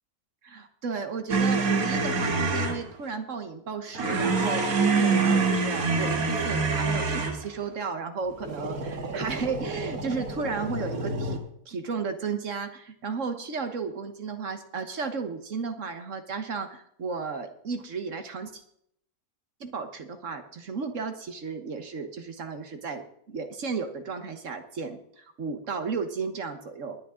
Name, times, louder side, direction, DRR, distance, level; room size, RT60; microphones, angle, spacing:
voice 1, 0.4-18.6 19.6-23.0 23.3-27.0, right 5 dB, 60° right, 7 dB, 1.5 m, -34 dB
sound 1, 1.3-2.8 3.9-7.4 8.4-11.4, right 4 dB, 80° right, 2.0 m, -26 dB
20.0 x 8.6 x 3.8 m, 0.69 s
omnidirectional pair, 1.5 m